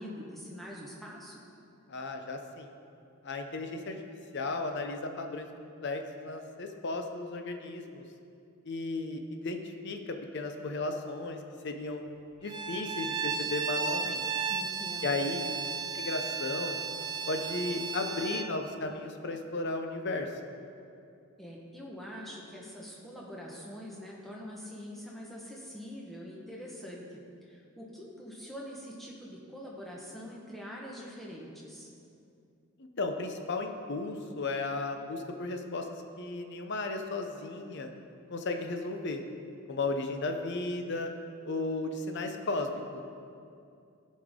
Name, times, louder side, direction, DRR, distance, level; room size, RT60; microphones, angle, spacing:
voice 1, 0.0-1.4 14.5-15.2 21.4-31.9, equal, ahead, -4 dB, 1.2 m, -44 dB
voice 2, 1.9-2.7 3.2-4.0 4.3-5.5 5.8-8.0 8.6-12.0 12.4-14.2 15.0-15.4 15.9-16.8 17.3-20.3 33.0-35.9 36.2-37.9 38.3-39.2 39.7-41.1 41.4-43.0, left 3 dB, 55° left, 5 dB, 0.7 m, -34 dB
Bowed string instrument, 12.5-18.5, right 5 dB, 20° right, 0.3 m, -34 dB
15.5 x 5.3 x 3.7 m, 2.5 s
head